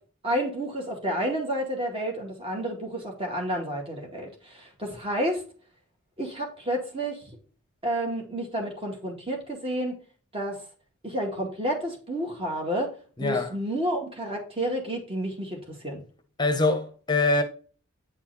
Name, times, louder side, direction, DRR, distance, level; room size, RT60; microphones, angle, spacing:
voice 1, 0.2-5.4 6.2-7.2 7.8-10.0 10.3-10.6 11.0-12.9 13.2-16.0, right 1 dB, 25° right, 2.1 m, -30 dB
voice 2, 13.2-13.5 16.4-17.4, left 2 dB, 20° left, 1.0 m, -24 dB
9.4 x 4.5 x 4.1 m
head